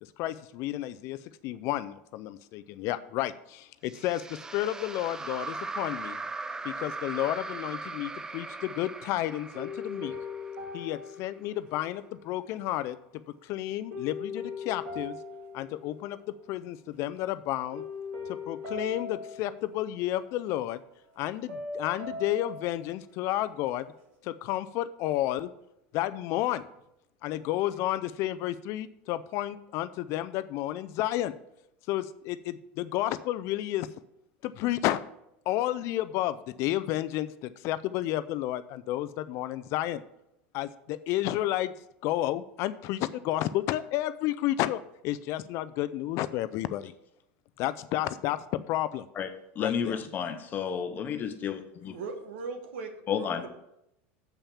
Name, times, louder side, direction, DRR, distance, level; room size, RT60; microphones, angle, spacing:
voice 1, 0.0-6.2 6.6-10.1 10.7-13.0 13.4-15.2 15.5-16.2 16.5-17.8 18.3-20.8 21.2-23.9 24.2-25.5 25.9-26.6 27.2-31.4 31.9-33.9 34.4-35.0 35.5-40.0 40.5-41.7 42.0-46.9 47.6-49.1 49.6-50.0, left 14 dB, 50° left, 14 dB, 0.4 m, -31 dB
sound 1, 3.9-11.2, right 3 dB, 10° right, 0.4 m, -39 dB
sound 2, 8.4-9.1 9.5-12.2 13.9-16.5 16.7-17.2 17.7-20.5 21.5-22.9, left 4 dB, 65° right, 2.4 m, -40 dB
voice 2, 49.6-52.0 53.1-53.5, left 7 dB, 30° left, 8 dB, 0.8 m, -31 dB
voice 3, 51.9-53.5, right 4 dB, 85° right, 6 dB, 1.5 m, -39 dB
7.1 x 5.6 x 7.0 m, 0.82 s
supercardioid pair, 135°, 6 cm